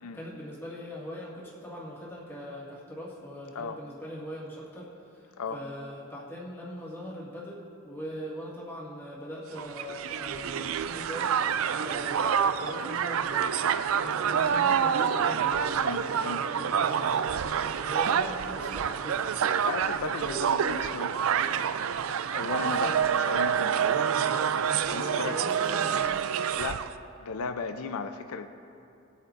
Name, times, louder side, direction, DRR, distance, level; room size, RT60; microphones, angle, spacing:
voice 1, 0.1-11.3 11.8-13.5 13.9-17.5 17.8-19.2 20.2-20.6 22.6-23.0 24.7-26.2, equal, 10° left, -6 dB, 1.9 m, -41 dB
Crowd, 9.6-26.9, right 7 dB, 75° right, 0.4 m, -27 dB
voice 2, 15.8-16.4 19.6-21.2 22.3-23.9 24.6-25.4 26.6-26.9 27.2-28.5, left 5 dB, 85° left, 8 dB, 0.5 m, -36 dB
20.5 x 8.6 x 2.6 m, 2.7 s
head